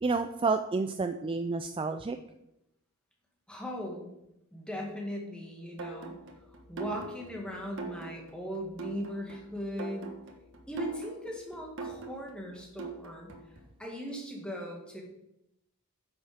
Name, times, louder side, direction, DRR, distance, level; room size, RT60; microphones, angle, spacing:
voice 1, 0.0-2.2, right 4 dB, 25° right, 8 dB, 0.4 m, -30 dB
voice 2, 3.5-4.1 4.5-6.2 6.7-10.1 10.7-13.3 13.8-15.0, equal, 5° left, -1 dB, 1.9 m, -38 dB
sound 1, 5.8-13.6, right 4 dB, 60° right, 1.5 m, -43 dB
9.3 x 7.2 x 5.1 m, 0.87 s
head